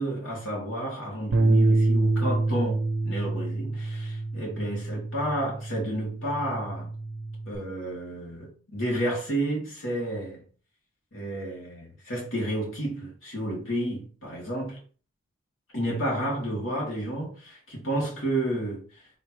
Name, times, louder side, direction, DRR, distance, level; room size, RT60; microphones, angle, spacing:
voice 1, 0.0-6.9 7.5-10.5 11.1-14.8 15.7-19.0, right 1 dB, 85° left, 2.3 m, -31 dB
Bass guitar, 1.3-7.6, right 2 dB, 65° right, 0.6 m, -27 dB
4.4 x 3.6 x 3.0 m
head